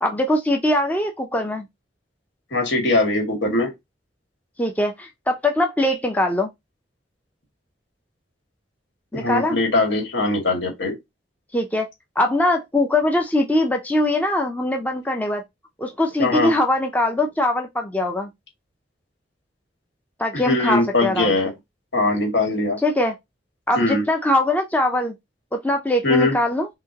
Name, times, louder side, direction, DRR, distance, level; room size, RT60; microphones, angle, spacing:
voice 1, 0.0-1.7 4.6-6.5 9.1-9.6 11.5-11.9 12.2-15.4 15.8-18.3 20.2-21.3 22.8-23.1 23.7-25.1 25.5-26.7, left 1 dB, 10° left, 0.6 m, -22 dB
voice 2, 2.5-3.7 9.1-11.0 16.2-16.5 20.3-21.5 21.9-22.8 23.7-24.0 26.0-26.3, left 2 dB, 70° left, 2.4 m, -21 dB
6.0 x 2.8 x 2.9 m
head